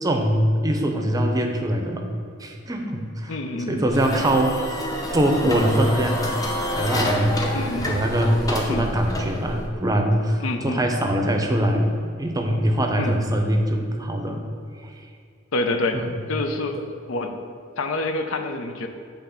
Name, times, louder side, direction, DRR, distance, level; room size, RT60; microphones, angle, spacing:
voice 1, 0.0-2.1 2.4-3.4 3.7-4.8 5.1-6.3 6.8-7.5 7.9-14.4 15.9-16.1, right 1 dB, 20° right, 3 dB, 0.6 m, -22 dB
voice 2, 3.3-3.8 7.5-7.9 8.7-8.9 10.4-10.8 13.0-13.2 15.5-16.0 16.3-17.3 17.8-18.9, left 2 dB, 80° left, 6 dB, 0.6 m, -27 dB
sound 1, 3.9-9.7, left 1 dB, 20° left, 0.7 m, -28 dB
7.9 x 3.5 x 5.6 m, 2.3 s
head